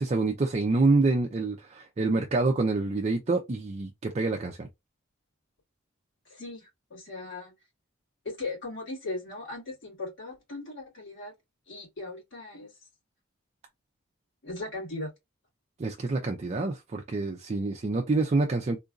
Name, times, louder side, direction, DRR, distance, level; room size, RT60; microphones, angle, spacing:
voice 1, 0.0-4.7 15.8-18.8, right 3 dB, 30° right, 0.4 m, -27 dB
voice 2, 6.3-7.5 8.2-11.3 11.7-12.7 14.4-15.1, left 2 dB, 65° left, 2.4 m, -38 dB
3.7 x 2.6 x 2.3 m
head